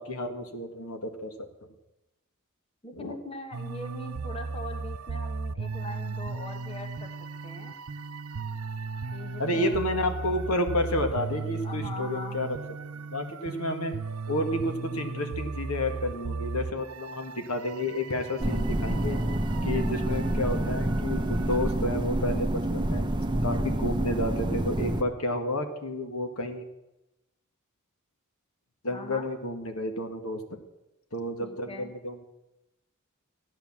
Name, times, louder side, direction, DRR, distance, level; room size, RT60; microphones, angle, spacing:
voice 1, 0.0-1.3 2.9-3.2 9.4-12.6 13.1-13.9 14.3-19.2 19.6-23.0 23.4-26.7 28.8-30.4 31.1-32.2, left 1 dB, 80° left, 6 dB, 1.8 m, -31 dB
voice 2, 2.8-7.1 7.4-7.7 9.1-9.8 11.6-12.4 28.9-29.3 31.4-31.9, left 2 dB, 25° left, 5 dB, 1.4 m, -41 dB
sound 1, 3.5-21.7, right 4 dB, 80° right, 0.7 m, -37 dB
sound 2, 18.4-25.0, right 1 dB, 20° right, 0.8 m, -28 dB
14.5 x 10.5 x 7.3 m, 0.95 s
head